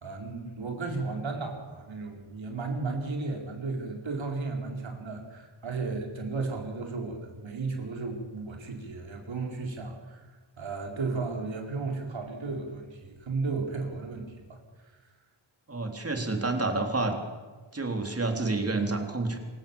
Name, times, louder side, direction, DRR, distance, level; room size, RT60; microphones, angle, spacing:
voice 1, 0.0-10.3 10.6-14.6, right 3 dB, 70° right, 2 dB, 4.6 m, -34 dB
voice 2, 15.7-17.1 17.7-19.4, right 3 dB, 30° right, 4 dB, 3.6 m, -29 dB
26.5 x 16.5 x 7.2 m, 1.4 s
wide cardioid pair, 120°, 47 cm